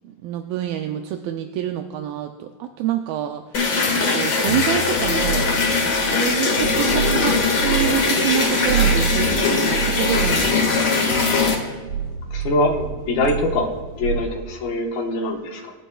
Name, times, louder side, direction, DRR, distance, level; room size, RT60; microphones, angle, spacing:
voice 1, 0.0-3.6 4.1-5.5 6.1-10.8, right 11 dB, 80° right, 5 dB, 2.3 m, -27 dB
sound 1, 3.5-11.6, left 4 dB, 55° left, 1.1 m, -20 dB
sound 2, 5.0-8.4 8.7-13.7 14.0-14.1, right 7 dB, 60° right, 1.1 m, -27 dB
voice 2, 12.3-13.7 14.0-15.7, left 2 dB, 75° left, 0 dB, 3.0 m, -23 dB
27.5 x 10.0 x 2.3 m, 1.3 s
omnidirectional pair, 4.4 m